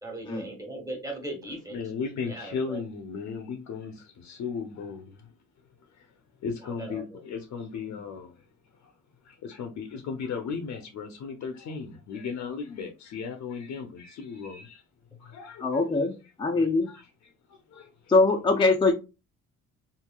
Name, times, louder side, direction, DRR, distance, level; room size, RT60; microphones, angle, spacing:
voice 1, 0.0-1.8 2.3-2.8 6.6-7.2, right 2 dB, 10° right, 1.3 m, -38 dB
voice 2, 1.7-9.0 9.2-14.8 15.1-16.1 16.5-18.1, left 5 dB, 65° left, 0.6 m, -37 dB
voice 3, 15.6-16.1 16.4-16.9 18.1-18.9, left 3 dB, 15° left, 0.4 m, -22 dB
3.0 x 2.7 x 2.2 m
cardioid pair, 90°, 30 cm